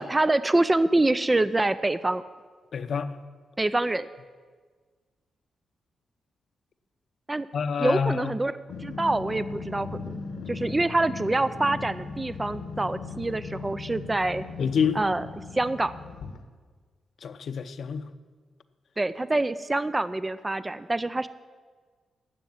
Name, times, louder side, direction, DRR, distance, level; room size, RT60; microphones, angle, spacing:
voice 1, 0.0-2.2 3.6-4.1 7.3-7.5 7.8-8.5 8.8-9.9 10.5-14.4 14.9-15.3 15.5-15.9 19.0-21.3, right 2 dB, 15° right, 14 dB, 0.4 m, -25 dB
voice 2, 2.7-3.1 7.5-8.3 14.6-15.0 17.2-18.1, left 6 dB, 60° left, 11 dB, 0.7 m, -27 dB
Growling, 8.7-16.4, left 4 dB, 90° left, 1.2 m, -38 dB
12.0 x 7.1 x 9.4 m, 1.5 s
cardioid pair, 115°, 0 cm